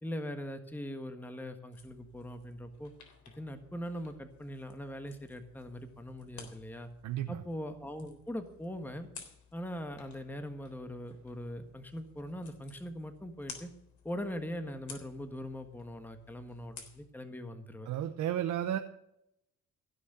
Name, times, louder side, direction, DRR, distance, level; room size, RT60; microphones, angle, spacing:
voice 1, 0.0-2.9 3.4-6.9 7.3-9.1 9.5-13.7 14.0-17.9, equal, 5° left, 7 dB, 1.4 m, -41 dB
sound 1, 1.7-17.1, left 6 dB, 70° left, 3.6 m, -55 dB
voice 2, 7.0-7.4 17.9-18.8, right 11 dB, 80° right, 6 dB, 1.0 m, -32 dB
16.0 x 6.4 x 8.0 m, 0.77 s
cardioid pair, 90°, 30 cm